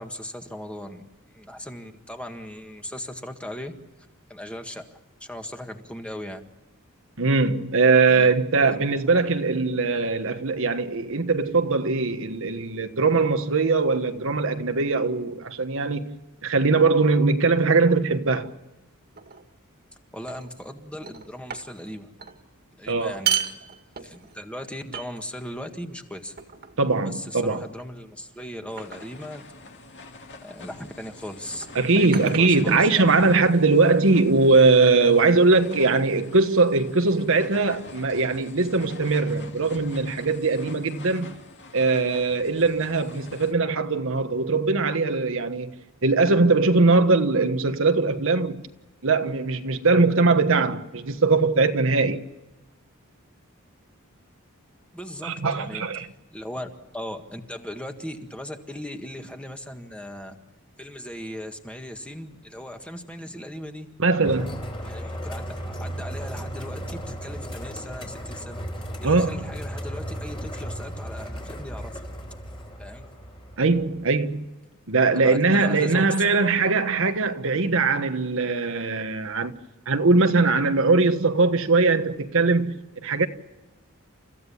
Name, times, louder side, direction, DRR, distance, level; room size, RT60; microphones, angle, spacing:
voice 1, 0.0-3.7 4.3-6.4 8.1-8.3 8.7-8.9 20.1-22.3 22.7-23.6 24.0-26.4 27.1-29.5 30.4-31.7 32.0-33.3 54.9-55.8 56.3-60.4 60.8-63.9 64.8-72.0 72.8-73.1 75.1-76.1, left 1 dB, 5° left, 1.7 m, -38 dB
voice 2, 7.2-18.5 22.9-23.1 26.8-27.7 31.7-41.4 41.7-48.6 49.0-52.3 55.2-56.1 64.0-64.6 69.0-69.5 73.6-74.5 74.9-79.5 79.9-83.3, right 3 dB, 65° right, 1.3 m, -21 dB
sound 1, 19.2-19.5 20.3-20.7 21.0-21.9 22.2-22.4 23.0-24.4 24.9-25.5 26.4-26.8 27.8-28.1 28.8-29.2 30.3-30.5 31.5-33.2, right 9 dB, 45° right, 2.2 m, -33 dB
sound 2, 28.7-43.5, left 2 dB, 55° left, 2.4 m, -45 dB
sound 3, 64.2-74.0, equal, 25° left, 3.2 m, -35 dB
30.0 x 15.0 x 7.0 m
head